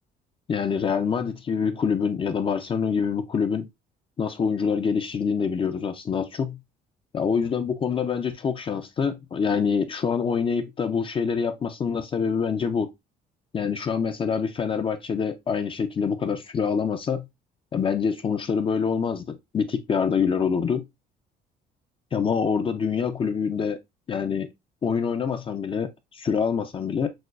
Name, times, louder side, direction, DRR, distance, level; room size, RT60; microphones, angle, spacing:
voice 1, 0.5-3.7 4.2-6.6 7.1-12.9 13.5-17.3 17.7-20.9 22.1-23.8 24.1-24.5 24.8-27.1, left 6 dB, 30° left, 0.4 m, -25 dB
6.1 x 2.2 x 2.4 m
cardioid pair, 110°, 17 cm